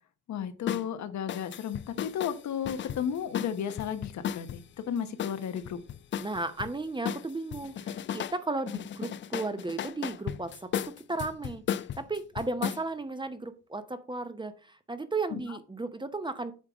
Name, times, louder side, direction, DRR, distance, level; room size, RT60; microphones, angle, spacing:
voice 1, 0.3-5.8 15.3-15.6, left 8 dB, 65° left, 10 dB, 1.1 m, -34 dB
sound 1, 0.7-0.9 1.3-4.6 5.2-6.7 7.0-8.4 8.7-12.8, left 9 dB, 40° left, 0.4 m, -35 dB
voice 2, 6.2-16.5, right 3 dB, 15° right, 10 dB, 0.8 m, -35 dB
8.1 x 3.5 x 5.0 m, 0.36 s
cardioid pair, 90°, 30 cm